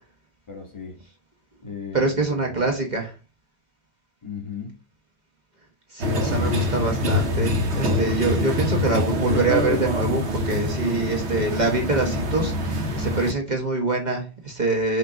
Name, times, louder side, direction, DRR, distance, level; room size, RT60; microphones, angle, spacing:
voice 1, 0.5-1.0 1.6-2.7 4.2-4.8, left 6 dB, 30° left, 0 dB, 1.9 m, -36 dB
voice 2, 1.9-3.1 5.9-15.0, right 3 dB, 45° right, 1 dB, 1.3 m, -25 dB
sound 1, 6.0-13.3, left 1 dB, 85° right, 1.3 m, -25 dB
6.5 x 3.0 x 5.0 m, 0.32 s
omnidirectional pair, 1.1 m